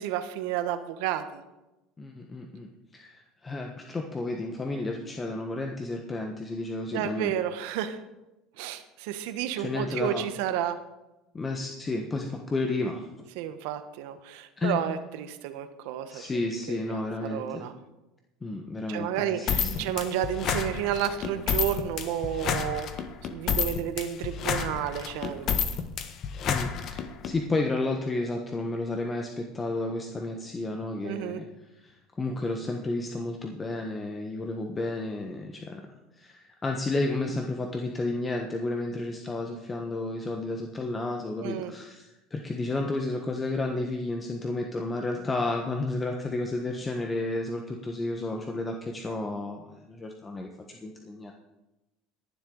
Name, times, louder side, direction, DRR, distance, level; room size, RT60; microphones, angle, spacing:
voice 1, 0.0-1.4 6.9-8.0 8.6-10.8 13.4-16.3 16.7-17.7 18.9-25.5 31.0-31.4 41.4-41.7, right 10 dB, 75° right, 10 dB, 1.1 m, -31 dB
voice 2, 2.0-2.7 2.9-7.3 9.6-10.3 11.3-13.1 14.6-14.9 16.1-17.7 18.4-19.9 26.5-31.5 31.8-35.9 36.1-51.3, left 2 dB, 20° left, 2 dB, 1.3 m, -32 dB
sound 1, 19.5-27.3, left 7 dB, 50° left, 1.3 m, -30 dB
22.0 x 7.6 x 4.0 m, 1.0 s
supercardioid pair, 95°, 0 cm